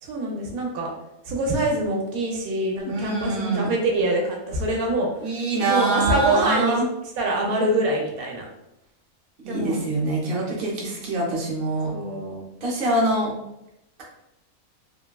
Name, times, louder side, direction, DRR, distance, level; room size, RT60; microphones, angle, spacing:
voice 1, 0.0-0.9 1.2-5.1 5.6-6.8 7.2-8.5 9.5-9.8 11.8-12.4, right 1 dB, 85° right, 0 dB, 1.0 m, -25 dB
voice 2, 2.8-3.7 5.2-6.9 9.4-11.9 12.6-13.3, right 2 dB, 45° right, -4 dB, 0.9 m, -24 dB
3.2 x 2.2 x 2.2 m, 0.87 s
omnidirectional pair, 1.5 m